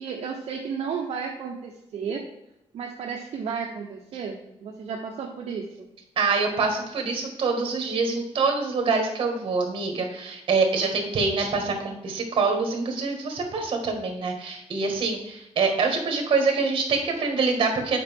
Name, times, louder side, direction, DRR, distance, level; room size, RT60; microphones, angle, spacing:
voice 1, 0.0-2.2 2.7-5.9, right 6 dB, 65° right, 0 dB, 0.9 m, -33 dB
voice 2, 6.2-18.0, right 4 dB, 50° right, 3 dB, 1.8 m, -25 dB
8.6 x 5.2 x 3.6 m, 0.87 s
wide cardioid pair, 160°, 11 cm